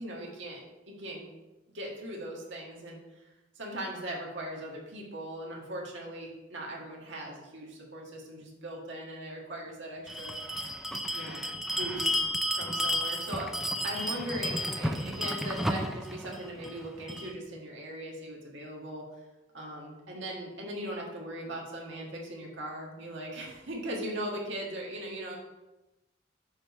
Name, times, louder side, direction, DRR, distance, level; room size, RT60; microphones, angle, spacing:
voice 1, 0.0-1.3 1.7-3.2 3.5-10.6 11.1-12.3 12.5-13.5 13.8-19.1 19.5-25.4, right 1 dB, 70° right, -2 dB, 1.6 m, -39 dB
Bell, 10.1-17.3, equal, ahead, 0.4 m, -32 dB
7.2 x 3.5 x 6.4 m, 1.0 s
head